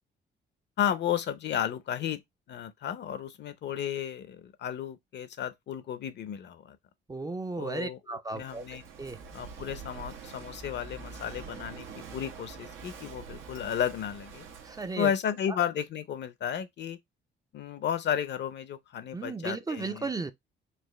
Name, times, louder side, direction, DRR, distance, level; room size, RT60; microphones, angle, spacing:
voice 1, 0.8-2.2 2.5-6.8 7.6-8.0 8.3-8.8 9.3-14.4 15.0-17.0 17.5-20.3, left 9 dB, 60° left, 0.6 m, -33 dB
voice 2, 7.1-9.2 14.6-15.1 15.5-15.6 19.1-20.3, right 3 dB, 20° right, 0.4 m, -35 dB
Walk footsteps / Wind / Waves surf, 8.3-15.0, right 5 dB, 90° right, 1.0 m, -45 dB
4.2 x 2.5 x 3.1 m
cardioid pair, 90°, 20 cm